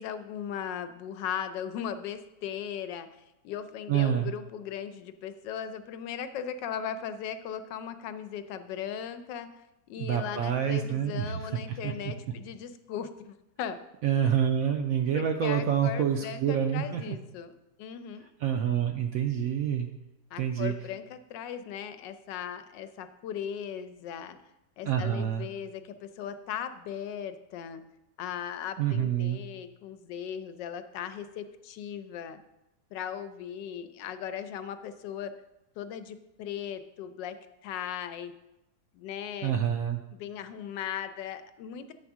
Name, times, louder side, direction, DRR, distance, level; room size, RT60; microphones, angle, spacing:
voice 1, 0.0-3.1 3.4-9.5 9.9-13.8 15.1-17.5 17.8-18.3 20.3-24.4 24.8-27.8 28.2-32.4 32.9-35.3 35.8-37.4 37.6-38.3 38.9-39.6 40.1-41.9, left 8 dB, 85° left, 10 dB, 1.2 m, -38 dB
voice 2, 3.9-4.3 10.0-12.1 14.0-17.2 18.4-19.9 20.4-20.7 24.8-25.5 28.8-29.4 39.4-40.0, right 9 dB, 75° right, 4 dB, 0.8 m, -27 dB
8.6 x 3.5 x 6.0 m, 0.93 s
omnidirectional pair, 1.9 m